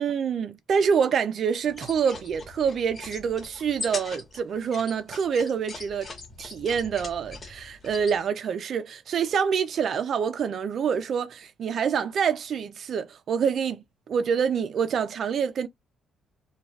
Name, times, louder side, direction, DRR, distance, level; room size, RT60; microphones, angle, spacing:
voice 1, 0.0-6.1 6.4-15.7, right 7 dB, 60° right, 0.4 m, -26 dB
sound 1, 1.7-8.2, left 3 dB, 40° left, 1.1 m, -41 dB
2.3 x 2.2 x 3.3 m
cardioid pair, 90°, 0 cm